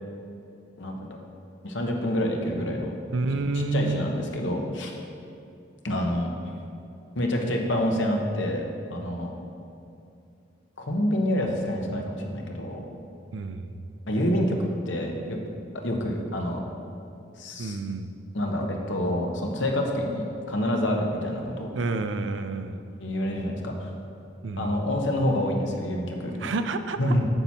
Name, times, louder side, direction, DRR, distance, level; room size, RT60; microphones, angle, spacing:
voice 1, 0.8-1.2 1.6-2.9 3.7-5.0 5.8-6.3 7.1-8.6 8.9-9.3 10.8-12.8 14.1-15.4 15.7-16.6 17.4-17.8 18.3-21.7 23.0-23.9 24.6-26.5 27.0-27.2, left 1 dB, 80° left, 1 dB, 1.1 m, -27 dB
voice 2, 3.1-4.1 13.3-13.9 17.6-18.2 21.7-22.8 24.4-24.9 26.4-27.2, right 3 dB, 75° right, 9 dB, 0.5 m, -29 dB
9.1 x 7.1 x 4.4 m, 2.6 s
head